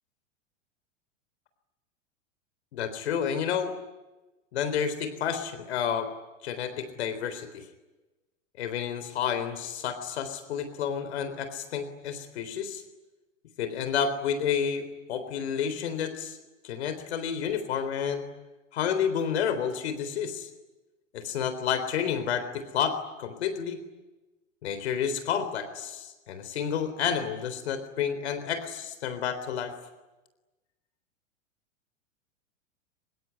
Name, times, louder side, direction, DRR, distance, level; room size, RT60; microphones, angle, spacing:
voice 1, 2.7-3.8 4.5-6.1 6.4-7.6 8.6-12.8 13.6-16.4 16.6-18.2 18.7-20.5 21.1-23.8 24.6-29.7, left 7 dB, 60° left, 10 dB, 3.8 m, -30 dB
25.0 x 23.5 x 9.9 m, 1.1 s
figure-of-eight pair, 95°, 38 cm